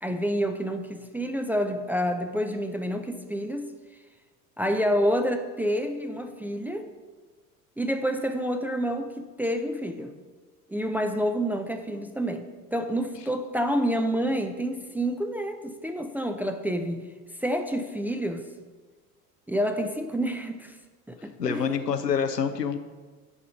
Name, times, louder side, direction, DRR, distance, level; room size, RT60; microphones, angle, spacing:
voice 1, 0.0-3.7 4.6-6.9 7.8-10.1 10.7-17.0 17.4-18.5 19.5-20.7 21.1-21.6, equal, 5° right, 6 dB, 0.4 m, -28 dB
voice 2, 21.4-22.8, left 7 dB, 90° left, 8 dB, 0.7 m, -26 dB
9.9 x 4.9 x 5.9 m, 1.4 s
figure-of-eight pair, 70°, 47 cm